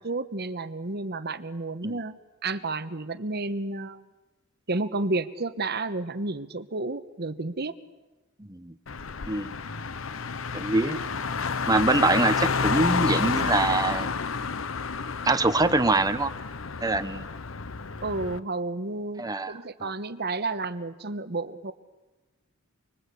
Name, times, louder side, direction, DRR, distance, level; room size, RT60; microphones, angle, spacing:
voice 1, 0.0-4.0 4.7-7.8 18.0-21.7, right 3 dB, 55° right, 11 dB, 1.2 m, -31 dB
voice 2, 8.4-8.7 9.3-9.6 10.5-11.0 11.6-14.1 15.2-16.3 16.8-17.2 19.2-19.9, right 2 dB, 20° right, 9 dB, 1.1 m, -24 dB
Car, 8.9-18.4, left 5 dB, 75° left, 0.9 m, -30 dB
29.5 x 22.0 x 8.4 m, 1.1 s
head